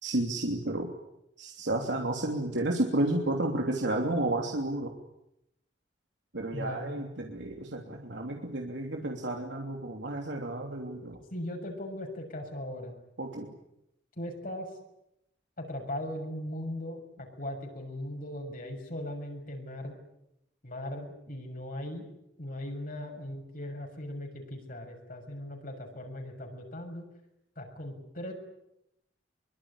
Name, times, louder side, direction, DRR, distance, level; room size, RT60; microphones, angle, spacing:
voice 1, 0.0-0.9 1.4-4.9 6.3-11.2 13.2-13.5, right 1 dB, 85° right, 1 dB, 3.2 m, -31 dB
voice 2, 6.5-7.0 11.3-12.9 14.2-14.7 15.6-20.0 20.6-22.1 22.4-27.0 27.6-28.3, left 1 dB, 50° left, 2 dB, 6.6 m, -38 dB
24.0 x 23.5 x 9.9 m, 0.82 s
head